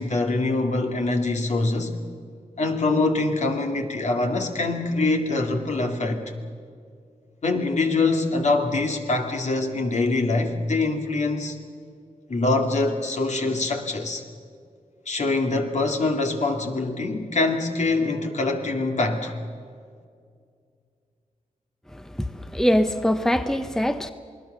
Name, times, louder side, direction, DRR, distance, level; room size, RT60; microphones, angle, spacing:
voice 1, 0.0-2.0 2.6-6.2 7.4-11.6 12.3-14.2 15.1-19.3, left 3 dB, 55° left, 3 dB, 2.5 m, -24 dB
voice 2, 22.5-24.1, equal, 5° left, 10 dB, 0.9 m, -22 dB
27.5 x 20.0 x 6.9 m, 2.2 s
wide cardioid pair, 80°, 14 cm